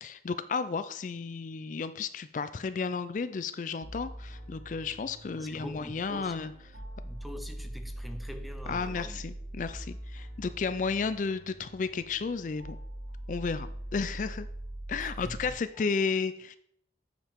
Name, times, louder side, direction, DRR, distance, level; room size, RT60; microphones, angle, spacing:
voice 1, 0.0-6.5 8.7-12.8 13.3-14.5 14.9-16.6, left 5 dB, 45° left, 0.4 m, -33 dB
sound 1, 3.8-15.5, right 1 dB, 70° right, 2.9 m, -42 dB
voice 2, 5.3-6.4 7.0-9.2 14.9-15.5, equal, ahead, 0.6 m, -44 dB
8.7 x 7.3 x 3.6 m
head